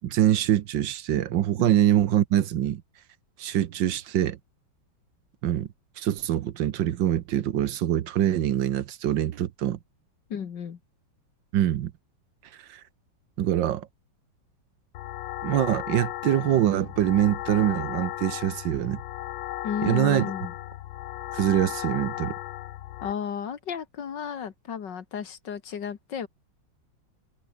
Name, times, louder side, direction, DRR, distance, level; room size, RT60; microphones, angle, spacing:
voice 1, 0.0-2.8 3.4-4.4 5.4-5.7 6.0-9.8 11.5-11.9 12.7-12.8 13.4-13.9 15.4-19.0 19.8-20.3 21.3-22.3, right 11 dB, 75° right, 1.6 m, -24 dB
voice 2, 10.3-10.8 19.6-20.5 23.0-26.3, left 7 dB, 65° left, 2.2 m, -33 dB
sound 1, 14.9-23.1, left 15 dB, 80° left, 1.4 m, -35 dB
omnidirectional pair, 2.1 m